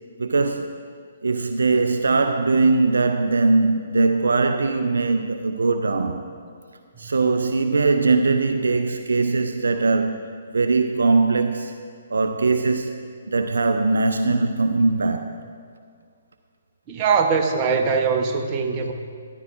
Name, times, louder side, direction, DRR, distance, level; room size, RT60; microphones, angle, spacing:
voice 1, 0.2-0.8 1.2-6.3 7.0-10.3 10.5-11.7 12.1-13.0 13.3-15.4, right 3 dB, 70° right, 0.4 m, -21 dB
voice 2, 16.9-18.9, right 5 dB, 30° right, 0.9 m, -21 dB
12.5 x 10.5 x 2.5 m
figure-of-eight pair, 130°, 0 cm